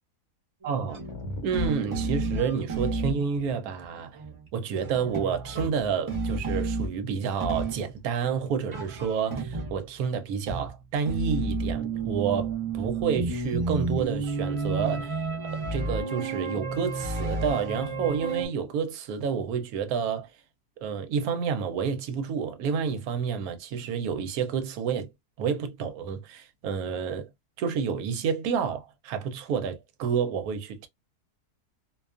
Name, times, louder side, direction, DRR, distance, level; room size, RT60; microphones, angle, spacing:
sound 1, 0.6-3.2 3.8-3.9 4.1-4.5 4.8-7.1 7.4-8.0 8.7-9.9 10.4-18.5, right 3 dB, 30° right, 0.5 m, -31 dB
voice 1, 0.6-1.0 1.4-4.2 4.5-20.3 20.8-25.1 25.4-27.3 27.6-30.9, right 6 dB, 70° right, 1.0 m, -29 dB
sound 2, 1.1-3.5, left 2 dB, 70° left, 1.1 m, -39 dB
2.5 x 2.3 x 2.3 m
omnidirectional pair, 1.7 m